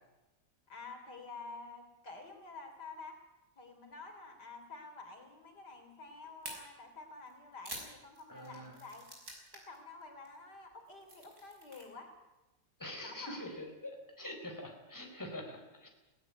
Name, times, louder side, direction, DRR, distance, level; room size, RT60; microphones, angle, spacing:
voice 1, 0.7-3.1 3.6-9.1 9.7-12.1 13.0-13.4, left 3 dB, 65° left, 4 dB, 4.0 m, -49 dB
sound 1, 6.4-6.5 7.3-9.8 10.0-10.3 10.7-11.8, right 1 dB, 45° right, 6.2 m, -48 dB
voice 2, 8.3-8.7 12.8-15.9, left 1 dB, 10° left, 2 dB, 4.2 m, -45 dB
18.0 x 18.0 x 9.5 m, 1.0 s
omnidirectional pair, 1.9 m